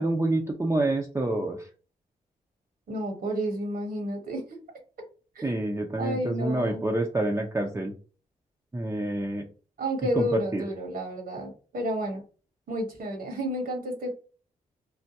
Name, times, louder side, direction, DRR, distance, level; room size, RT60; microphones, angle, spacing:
voice 1, 0.0-1.6 5.4-7.9 8.7-9.5 10.2-10.6, right 2 dB, 15° right, 0 dB, 0.6 m, -27 dB
voice 2, 2.9-4.6 5.3-5.5 6.0-6.8 9.8-12.2 12.7-14.1, equal, 70° right, 2 dB, 1.2 m, -31 dB
3.3 x 2.2 x 2.7 m, 0.37 s
supercardioid pair, 50°, 16 cm